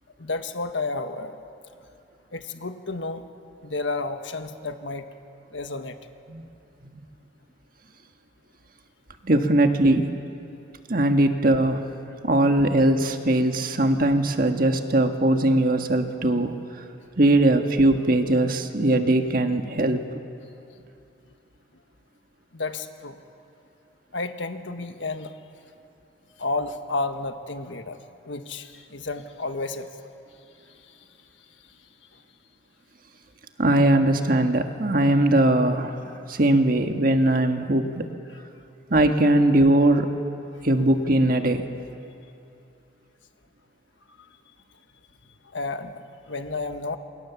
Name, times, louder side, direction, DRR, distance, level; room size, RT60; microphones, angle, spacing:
voice 1, 0.2-1.4 2.3-3.2 3.6-5.1 5.5-6.0 20.8-20.9 22.5-23.2 24.1-25.3 26.4-29.9 30.7-31.3 32.1-32.2 40.6-40.7 44.1-44.3 45.4-47.0, left 3 dB, 85° left, 7 dB, 1.5 m, -32 dB
voice 2, 9.2-10.1 10.9-11.9 12.2-16.5 17.2-20.0 33.6-38.1 38.9-40.1 40.6-41.7, right 1 dB, 50° right, 6 dB, 1.5 m, -20 dB
28.0 x 24.5 x 7.2 m, 2.7 s
head